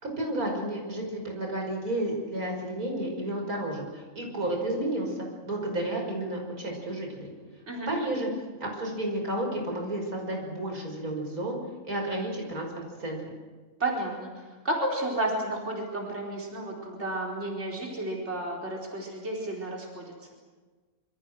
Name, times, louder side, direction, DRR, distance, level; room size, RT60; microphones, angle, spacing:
voice 1, 0.0-7.3 7.9-8.3 8.6-11.6 11.8-12.7 13.0-13.2, right 1 dB, 85° right, 1 dB, 6.1 m, -31 dB
voice 2, 13.8-20.1, right 1 dB, 50° right, -2 dB, 4.8 m, -32 dB
27.0 x 25.0 x 6.4 m, 1.4 s
omnidirectional pair, 1.5 m